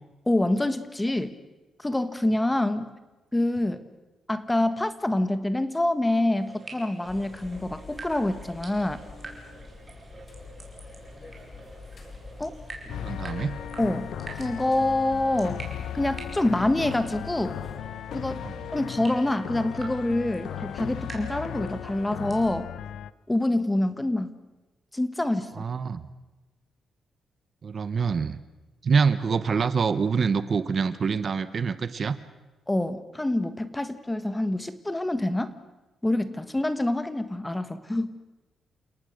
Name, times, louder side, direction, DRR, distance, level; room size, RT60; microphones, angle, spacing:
voice 1, 0.3-1.3 1.8-2.9 3.3-3.8 4.3-9.0 12.4-12.5 13.8-14.1 14.4-15.6 15.9-17.6 18.1-18.4 18.7-22.7 23.3-24.3 24.9-25.7 32.7-35.6 36.0-38.1, left 1 dB, 10° left, 12 dB, 1.4 m, -26 dB
sound 1, 6.4-22.4, right 3 dB, 25° right, 4.9 m, -46 dB
sound 2, 7.1-17.8, left 3 dB, 40° left, 3.7 m, -46 dB
sound 3, 12.9-23.1, left 10 dB, 80° left, 0.7 m, -37 dB
voice 2, 13.0-13.6 18.4-18.5 25.6-26.1 27.6-28.4 28.8-32.2, right 5 dB, 45° right, 14 dB, 1.1 m, -25 dB
29.5 x 18.5 x 6.6 m, 1.1 s
cardioid pair, 130°, 0 cm